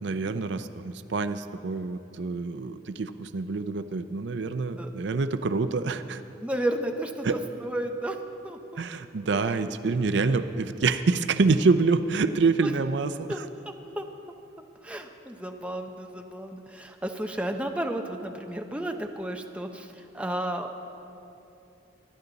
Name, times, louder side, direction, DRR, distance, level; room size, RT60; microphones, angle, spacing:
voice 1, 0.0-6.2 7.2-7.4 8.8-13.5, right 4 dB, 70° right, 11 dB, 0.5 m, -26 dB
voice 2, 6.4-8.2 8.4-8.6 12.6-12.7 13.3-13.4 13.6-14.1 14.8-20.7, right 1 dB, 5° right, 3 dB, 0.7 m, -32 dB
23.0 x 11.0 x 4.0 m, 2.8 s
head